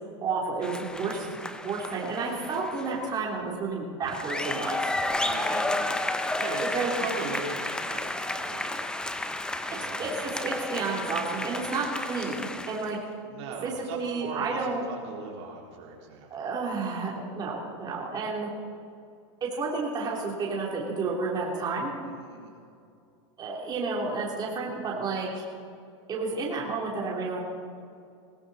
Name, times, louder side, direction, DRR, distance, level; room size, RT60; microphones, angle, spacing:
voice 1, 0.2-1.3 1.6-4.9 6.7-7.0 10.0-13.0 13.6-14.9 16.3-18.5 19.4-21.9 23.4-25.4 26.1-27.4, right 4 dB, 25° right, -3 dB, 3.2 m, -31 dB
sound 1, 0.6-3.1 4.0-13.0, left 2 dB, 5° left, 0.7 m, -32 dB
voice 2, 5.1-5.8 6.2-9.0 9.7-10.1 13.3-16.5 22.0-22.6, right 4 dB, 65° right, -2 dB, 3.9 m, -39 dB
21.0 x 15.5 x 4.2 m, 2.4 s
supercardioid pair, 135°, 16 cm